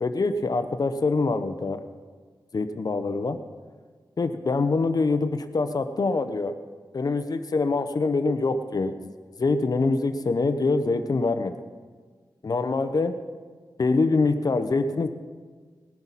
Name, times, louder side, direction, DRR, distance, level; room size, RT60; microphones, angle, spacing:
voice 1, 0.0-1.8 2.5-3.4 4.2-6.6 6.9-9.0 9.4-11.5 12.4-13.2 13.8-15.1, left 3 dB, 55° left, 9 dB, 0.8 m, -24 dB
20.0 x 11.5 x 4.1 m, 1.5 s
wide cardioid pair, 110°, 8 cm